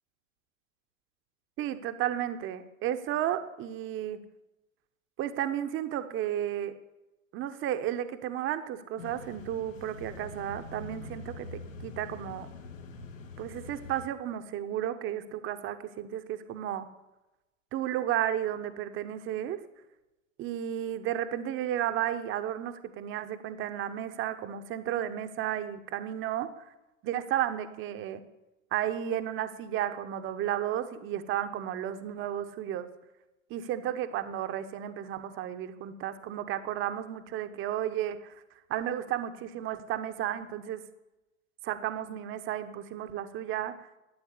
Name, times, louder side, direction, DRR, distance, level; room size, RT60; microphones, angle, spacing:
voice 1, 1.6-4.2 5.2-6.7 7.3-12.5 13.4-16.9 17.7-19.6 20.4-26.6 27.0-28.2 28.7-32.9 33.5-38.3 38.7-40.8 41.6-43.9, right 11 dB, 30° right, 9 dB, 1.2 m, -33 dB
sound 1, 9.0-14.1, left 3 dB, 70° left, 2.4 m, -44 dB
13.0 x 8.9 x 8.5 m, 1.0 s
figure-of-eight pair, 100°, 40 cm